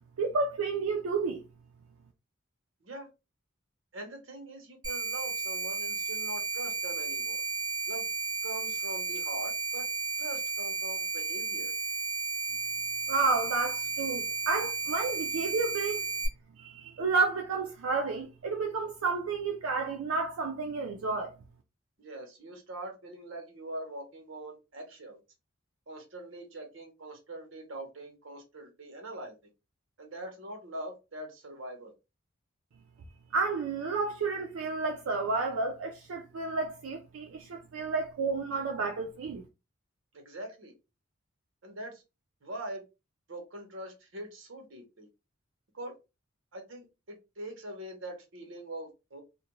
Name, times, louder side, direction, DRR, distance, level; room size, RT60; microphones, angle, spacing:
voice 1, 0.2-1.4 13.1-16.1 16.6-21.3 33.3-39.4, right 4 dB, 85° right, 0.4 m, -31 dB
voice 2, 3.9-7.4 7.9-8.1 8.4-9.9 10.2-11.7 22.0-25.2 25.9-29.3 30.0-31.9 40.1-40.7 41.6-42.0 42.4-42.8 43.3-45.1 45.7-45.9 46.5-49.2, right 1 dB, 65° right, 0.9 m, -43 dB
sound 1, 4.8-16.3, right 5 dB, 20° right, 1.0 m, -33 dB
2.4 x 2.1 x 2.9 m
head